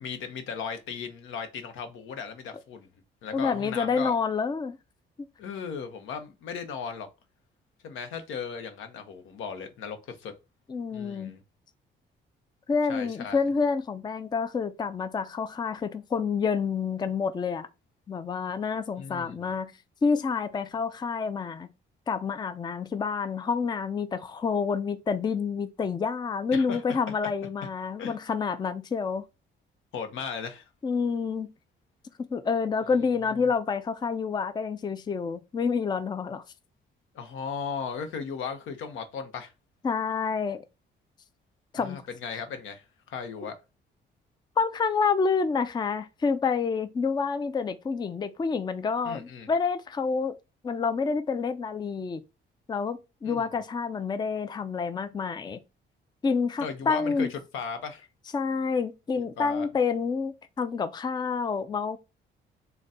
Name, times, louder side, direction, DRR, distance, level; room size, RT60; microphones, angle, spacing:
voice 1, 0.0-2.9 3.2-4.1 5.4-7.1 7.8-10.3 10.9-11.4 12.9-13.4 19.0-19.5 26.5-27.0 28.0-28.1 29.9-30.7 33.3-33.5 37.1-39.5 41.8-43.6 49.0-49.5 53.2-53.5 56.6-58.0 59.4-59.7, left 6 dB, 85° left, 0.8 m, -36 dB
voice 2, 3.3-4.8 10.7-11.4 12.7-17.7 18.1-19.7 20.0-21.7 22.1-29.3 30.8-31.5 32.2-36.4 39.8-40.6 41.7-42.0 44.6-50.4 50.6-52.2 52.7-55.6 56.2-57.3 58.3-62.0, left 5 dB, 20° left, 0.4 m, -28 dB
4.0 x 2.2 x 3.6 m
cardioid pair, 90°, 20 cm